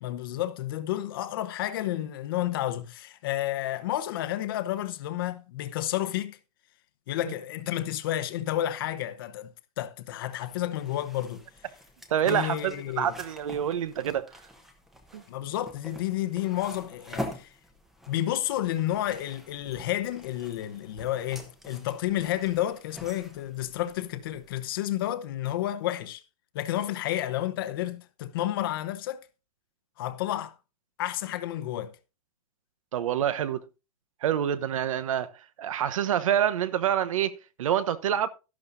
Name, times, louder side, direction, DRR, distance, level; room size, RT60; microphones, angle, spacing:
voice 1, 0.0-6.4 7.1-9.5 9.8-11.4 12.3-13.1 15.3-17.5 18.1-26.2 26.5-29.2 30.0-30.5 31.0-31.9, left 13 dB, 35° left, 0.9 m, -31 dB
sound 1, 10.3-24.6, left 1 dB, ahead, 0.9 m, -45 dB
voice 2, 12.1-14.3 15.1-15.2 32.9-33.6 34.2-35.3 35.6-37.3 37.6-38.3, right 10 dB, 60° right, 1.0 m, -27 dB
12.5 x 11.0 x 2.6 m
hypercardioid pair, 175°, 19 cm